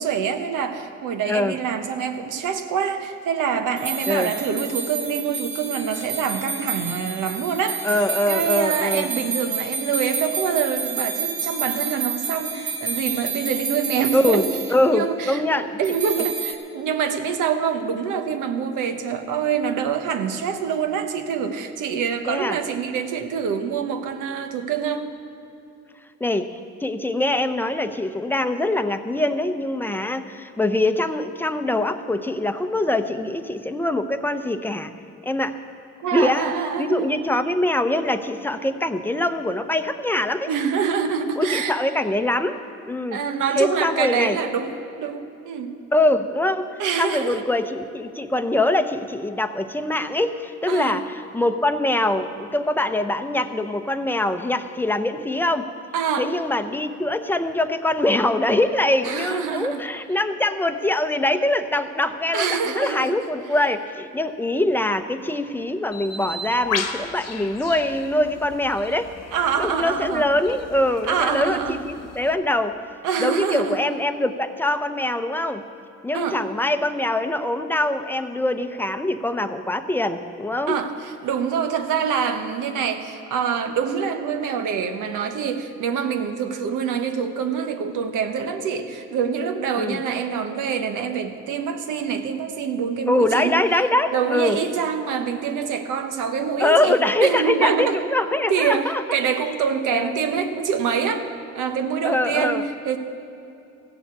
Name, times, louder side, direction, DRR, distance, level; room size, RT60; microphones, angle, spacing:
voice 1, 0.0-14.4 14.9-25.1 36.0-37.2 40.5-41.7 43.1-44.7 45.0-45.7 46.8-47.4 50.7-51.0 55.9-56.3 59.0-59.8 62.3-63.1 69.3-70.3 71.1-71.8 73.0-73.8 76.1-76.4 80.7-93.6 94.1-98.0 98.5-101.2 101.5-103.0, right 7 dB, 85° right, 7 dB, 1.1 m, -25 dB
sound 1, 3.8-14.9 15.8-16.5, right 5 dB, 25° right, 2.3 m, -29 dB
voice 2, 7.8-9.1 14.1-15.8 22.3-22.6 26.2-34.9 35.2-35.6 36.1-36.5 36.8-40.5 41.4-42.6 42.9-43.2 43.6-44.4 45.9-46.7 47.0-51.0 51.3-55.7 56.2-69.1 69.6-72.7 73.2-75.6 76.0-80.8 89.8-90.0 93.1-94.6 96.6-99.0 99.9-100.1 102.0-102.6, left 1 dB, 5° left, 8 dB, 0.7 m, -23 dB
Bird, 65.9-72.3, left 5 dB, 55° left, 1.1 m, -35 dB
15.5 x 7.1 x 8.3 m, 2.7 s
cardioid pair, 90°, 30 cm